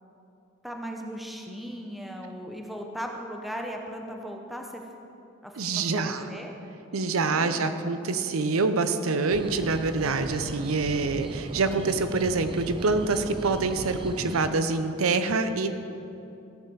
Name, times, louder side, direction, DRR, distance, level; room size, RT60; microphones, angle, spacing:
voice 1, 0.6-4.8 5.4-6.5 7.2-7.9, equal, ahead, 1 dB, 0.8 m, -38 dB
voice 2, 5.6-6.3 6.9-15.7, right 3 dB, 90° right, 9 dB, 0.7 m, -26 dB
sound 1, 9.3-14.5, right 2 dB, 25° right, 0.4 m, -38 dB
15.0 x 5.7 x 6.9 m, 2.8 s
head